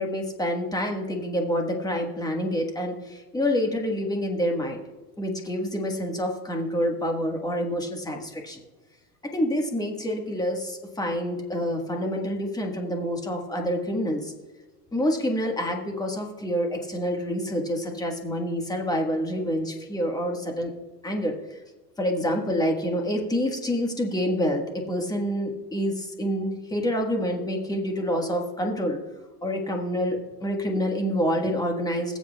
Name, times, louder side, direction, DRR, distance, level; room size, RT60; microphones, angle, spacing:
voice 1, 0.0-4.8 5.2-8.6 9.2-14.3 14.9-20.7 21.0-21.6 22.0-29.0 29.4-32.2, equal, 10° left, 2 dB, 1.4 m, -27 dB
20.5 x 7.8 x 2.3 m, 1.3 s
supercardioid pair, 130°, 47 cm